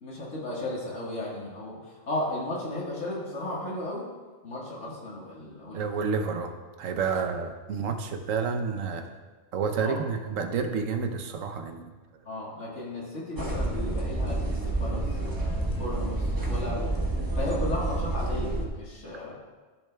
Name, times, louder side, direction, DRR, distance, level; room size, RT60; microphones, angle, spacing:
voice 1, 0.0-4.1 4.4-5.8 9.8-10.0 12.3-16.8 17.4-19.3, left 1 dB, 75° left, -5 dB, 1.9 m, -35 dB
voice 2, 5.7-6.5 6.8-9.0 9.5-11.9, right 5 dB, 85° right, 6 dB, 1.1 m, -29 dB
sound 1, 13.4-18.7, right 2 dB, 20° right, 0.8 m, -29 dB
13.5 x 6.9 x 2.2 m, 1.3 s
omnidirectional pair, 1.3 m